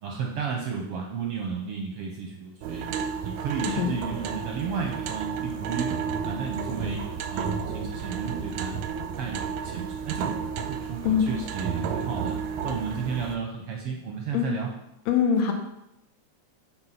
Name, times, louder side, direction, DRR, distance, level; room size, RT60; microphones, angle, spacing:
voice 1, 0.0-2.9 3.2-5.9 6.2-7.0 7.3-8.9 9.1-10.4 10.7-12.4 12.6-14.7, right 5 dB, 70° right, 1 dB, 1.4 m, -33 dB
sound 1, 2.6-13.4, right 6 dB, 90° right, 2.1 m, -32 dB
voice 2, 15.1-15.5, left 7 dB, 75° left, 4 dB, 1.9 m, -22 dB
6.6 x 4.4 x 5.7 m, 0.86 s
omnidirectional pair, 3.4 m